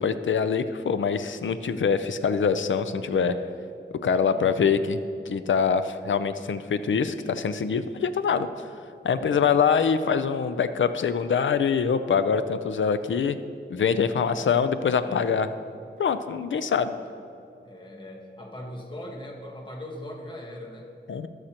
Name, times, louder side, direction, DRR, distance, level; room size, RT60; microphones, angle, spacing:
voice 1, 0.0-3.3 4.0-8.5 9.0-13.4 13.7-15.5 16.0-16.9 21.1-21.3, left 6 dB, 85° left, 11 dB, 0.5 m, -24 dB
voice 2, 4.1-4.9 9.1-9.4 14.1-14.4 15.0-15.5 16.9-17.2 17.6-20.9, left 1 dB, 25° left, -1 dB, 1.4 m, -41 dB
19.0 x 6.5 x 2.9 m, 2.6 s
wide cardioid pair, 115°, 20 cm